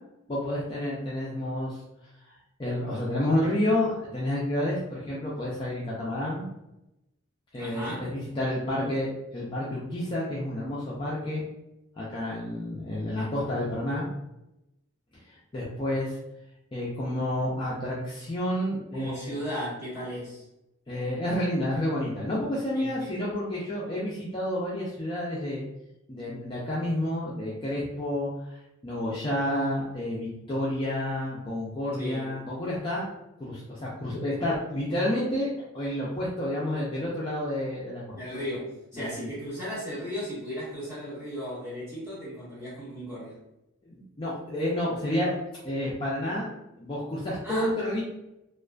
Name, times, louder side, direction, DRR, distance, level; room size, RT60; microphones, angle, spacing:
voice 1, 0.3-1.8 2.3-2.4 2.6-6.5 7.5-11.4 12.0-14.1 15.3-16.2 16.7-19.4 20.9-25.6 26.1-28.6 28.8-33.1 33.4-38.2 38.9-39.3 43.9-45.4 45.6-46.5 46.8-48.0, left 1 dB, 25° left, -7 dB, 0.3 m, -30 dB
voice 2, 7.5-8.1 8.7-8.9 18.9-20.4 22.7-23.0 32.0-32.3 38.1-43.4 47.4-48.0, equal, 10° right, -10 dB, 1.2 m, -36 dB
2.4 x 2.3 x 2.2 m, 0.90 s
head